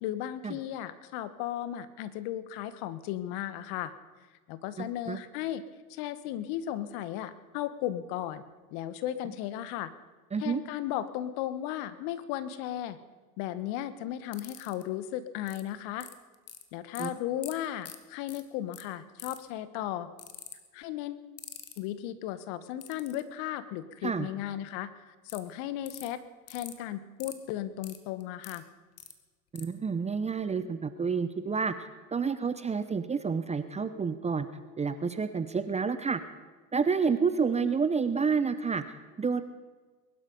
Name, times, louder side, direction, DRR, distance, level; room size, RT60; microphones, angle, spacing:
voice 1, 0.0-3.9 4.5-5.6 5.9-8.4 8.7-9.9 10.4-13.0 13.4-16.1 16.7-20.1 20.7-21.3 21.8-26.2 26.5-28.6, left 12 dB, 50° left, 13 dB, 1.4 m, -35 dB
voice 2, 4.8-5.2 10.3-10.6 17.0-17.1 24.0-24.3 29.5-34.5 34.8-36.2 36.7-38.8 39.2-39.4, right 5 dB, 15° right, 11 dB, 0.8 m, -29 dB
sound 1, 14.3-14.8 15.5-15.6 16.0-16.6 17.0-17.1 17.4-17.5 17.8-18.0 18.3-18.4 18.7-18.8 19.2-19.5 20.2-20.6 21.4-21.8 22.8-23.2 25.3-25.4 25.9-26.1 26.5-26.7 27.2-27.3 27.8-28.6 29.0-29.1 29.6-29.7, left 10 dB, 30° left, 1.7 m, -44 dB
22.0 x 12.0 x 5.4 m, 1.3 s
hypercardioid pair, 95°, 46 cm